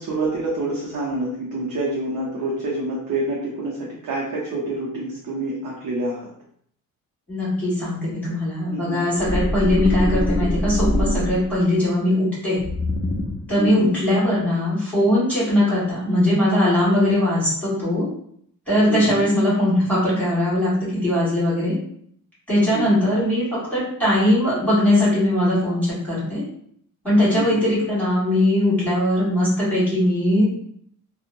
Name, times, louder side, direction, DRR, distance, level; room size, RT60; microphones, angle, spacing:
voice 1, 0.0-6.3 8.7-9.0 13.6-13.9 18.9-19.3 22.7-23.1 27.3-27.7, right 2 dB, 60° right, -5 dB, 0.7 m, -27 dB
voice 2, 7.3-12.6 13.5-18.1 18.7-21.7 22.5-25.8 26.1-26.4 27.0-30.5, left 1 dB, 5° left, -10 dB, 1.4 m, -20 dB
sound 1, 9.2-11.7 12.6-13.6, left 1 dB, 25° left, 0.4 m, -23 dB
2.8 x 2.0 x 2.5 m, 0.65 s
cardioid pair, 105°, 34 cm